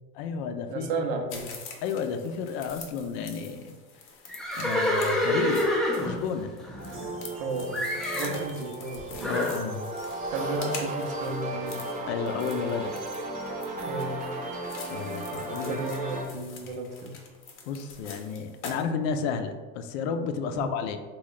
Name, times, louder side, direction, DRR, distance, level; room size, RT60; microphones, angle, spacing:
voice 1, 0.1-1.0 1.8-3.8 4.6-6.5 9.2-9.8 12.1-12.9 14.9-15.8 17.7-21.0, left 6 dB, 90° left, 7 dB, 0.5 m, -32 dB
voice 2, 0.7-1.5 7.4-9.3 10.3-11.8 13.9-14.2 15.7-17.2 20.5-20.7, right 3 dB, 75° right, 3 dB, 0.7 m, -33 dB
sound 1, 1.3-18.8, left 4 dB, 45° left, 0.6 m, -45 dB
Livestock farm animals working animals, 4.3-7.4 7.7-8.4 9.2-9.6, left 1 dB, ahead, 0.3 m, -27 dB
sound 2, 6.8-16.2, right 2 dB, 25° right, 0.7 m, -35 dB
3.1 x 2.3 x 3.8 m, 1.4 s
cardioid pair, 140°, 30 cm